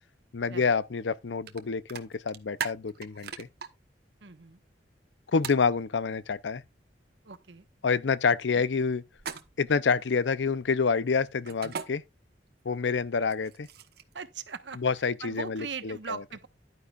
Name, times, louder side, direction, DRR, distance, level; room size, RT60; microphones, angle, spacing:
voice 1, 0.3-3.5 5.3-6.6 7.8-9.0 9.6-12.0 12.7-13.7 14.8-16.2, left 5 dB, 80° left, 0.6 m, -27 dB
sound 1, 1.5-1.6 1.9-3.7 5.4-5.6 9.2-9.7 11.5-11.9 13.2-14.1, right 7 dB, 60° right, 1.1 m, -37 dB
voice 2, 4.2-4.6 7.2-7.7 8.5-8.6 14.1-14.8 15.2-16.5, right 5 dB, 80° right, 1.2 m, -40 dB
11.0 x 9.7 x 2.4 m
head